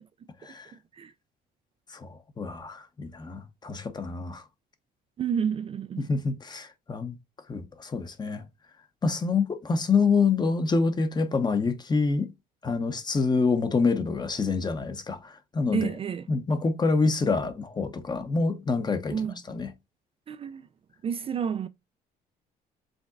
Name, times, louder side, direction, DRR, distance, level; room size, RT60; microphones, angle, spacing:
voice 1, 1.9-4.4 6.0-7.2 7.5-8.4 9.0-12.3 12.6-15.9 16.3-19.2 19.5-19.7, left 4 dB, 25° left, 0.9 m, -26 dB
voice 2, 5.2-6.1 15.7-16.3 19.1-19.4 20.3-20.7 21.0-21.7, right 7 dB, 35° right, 0.4 m, -30 dB
5.2 x 3.5 x 2.5 m
cardioid pair, 110°, 17 cm